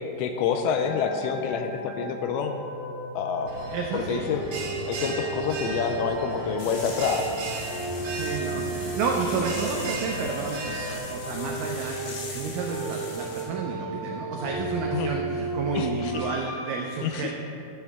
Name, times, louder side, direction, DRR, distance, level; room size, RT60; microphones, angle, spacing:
voice 1, 0.2-2.6 3.2-3.5 3.9-4.4 4.9-7.4 8.5-8.7 9.3-9.4 14.9-15.1 15.7-16.3 17.0-17.3, left 6 dB, 80° left, 6 dB, 2.3 m, -28 dB
sound 1, 0.7-16.7, right 2 dB, 35° right, 1.5 m, -34 dB
Bell, 3.5-11.0, right 3 dB, 60° right, 3.1 m, -36 dB
voice 2, 3.7-4.2 8.0-17.3, right 5 dB, 85° right, 0 dB, 1.9 m, -31 dB
sound 2, 6.6-13.4, left 3 dB, 65° left, 2.8 m, -41 dB
13.0 x 8.1 x 3.6 m, 2.6 s
omnidirectional pair, 4.7 m